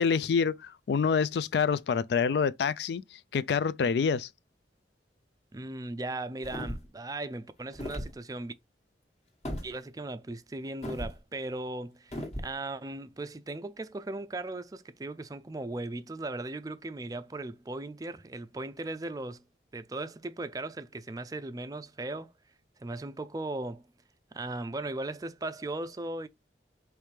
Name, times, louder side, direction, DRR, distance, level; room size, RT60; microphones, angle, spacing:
voice 1, 0.0-4.3, left 6 dB, 70° left, 0.3 m, -27 dB
voice 2, 5.5-8.5 9.6-19.4 19.7-22.3 22.8-23.8 24.3-26.3, right 2 dB, 20° right, 0.4 m, -37 dB
sound 1, 6.4-7.0 7.7-8.1 9.4-9.7 10.8-11.2 12.1-12.5, equal, 40° left, 1.2 m, -36 dB
5.0 x 3.2 x 3.2 m
head